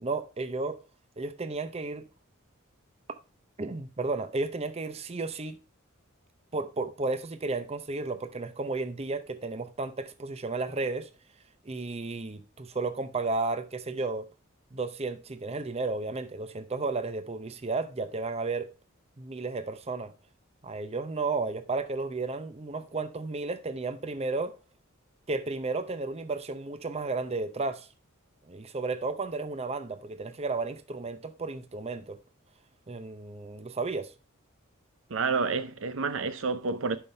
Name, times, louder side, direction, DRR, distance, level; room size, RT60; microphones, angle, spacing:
voice 1, 0.0-0.8 1.2-2.1 3.6-5.6 6.5-11.1 11.6-14.3 14.7-18.7 19.2-20.1 20.6-24.5 25.3-27.9 28.5-32.2 32.9-34.1, right 3 dB, 30° right, 0.7 m, -33 dB
voice 2, 35.1-37.0, right 4 dB, 65° right, 0.7 m, -29 dB
11.0 x 5.5 x 3.2 m
head